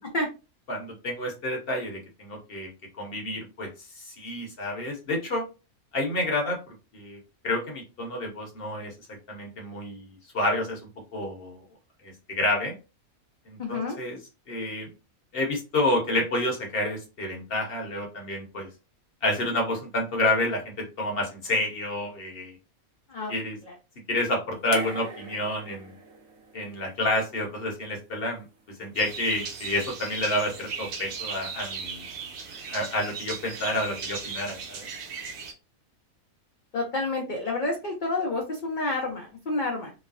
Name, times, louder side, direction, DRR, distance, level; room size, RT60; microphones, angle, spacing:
voice 1, 0.7-2.7 3.0-3.7 4.0-5.4 5.9-6.6 6.9-7.2 7.4-8.9 9.3-10.1 10.3-10.8 11.1-11.6 12.0-12.7 13.5-14.2 14.5-14.9 15.3-18.7 19.2-22.5 23.3-23.6 24.1-25.9 26.5-28.4 28.8-32.0 32.7-34.9, left 1 dB, 50° left, 1 dB, 0.9 m, -29 dB
voice 2, 13.6-14.0 23.1-23.3 23.6-23.7 36.7-39.9, left 2 dB, 65° left, 0 dB, 0.4 m, -29 dB
sound 1, 24.7-27.9 29.1-29.2, right 5 dB, 60° right, 0.8 m, -42 dB
sound 2, 29.0-35.5, right 5 dB, 75° right, 1.2 m, -37 dB
3.0 x 2.0 x 2.4 m, 0.30 s
omnidirectional pair, 1.5 m